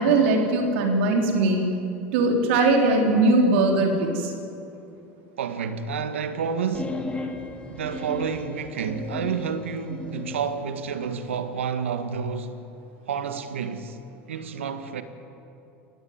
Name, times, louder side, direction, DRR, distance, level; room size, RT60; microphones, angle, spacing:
voice 1, 0.0-1.6 2.1-4.3, right 2 dB, 70° right, 3.5 m, -20 dB
voice 2, 5.4-7.0 7.7-12.6 13.1-14.0 14.3-15.0, right 6 dB, 90° right, 1.5 m, -29 dB
sound 1, 6.7-10.5, left 3 dB, 15° left, 3.2 m, -35 dB
22.5 x 18.0 x 9.5 m
hypercardioid pair, 95°, 7 cm